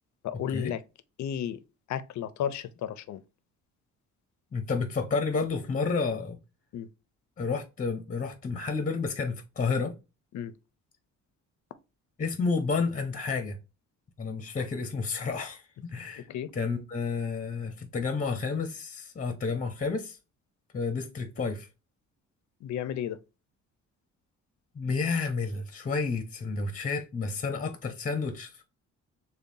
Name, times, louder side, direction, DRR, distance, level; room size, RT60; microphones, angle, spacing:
voice 1, 0.2-0.8 1.2-1.6 1.9-3.2 6.7-6.9 10.3-10.5 16.2-16.5 22.6-23.2, left 9 dB, 70° left, 0.6 m, -33 dB
voice 2, 4.5-6.4 7.4-9.9 12.2-13.6 14.2-16.3 16.5-20.2 20.7-21.7 24.7-28.5, left 4 dB, 25° left, 0.9 m, -30 dB
6.7 x 2.3 x 2.7 m
cardioid pair, 90°, 30 cm